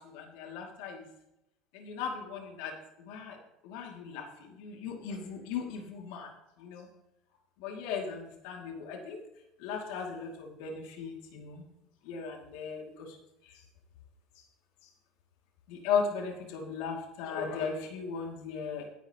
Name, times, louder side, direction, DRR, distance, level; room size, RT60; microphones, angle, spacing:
voice 1, 0.1-1.0 1.7-2.7 3.0-3.4 3.6-4.3 4.6-6.3 6.6-6.9 7.6-9.2 9.6-11.6 12.1-13.1 15.7-18.8, left 6 dB, 80° left, 2 dB, 2.3 m, -36 dB
16.5 x 10.5 x 2.9 m, 0.88 s
cardioid pair, 180°, 0 cm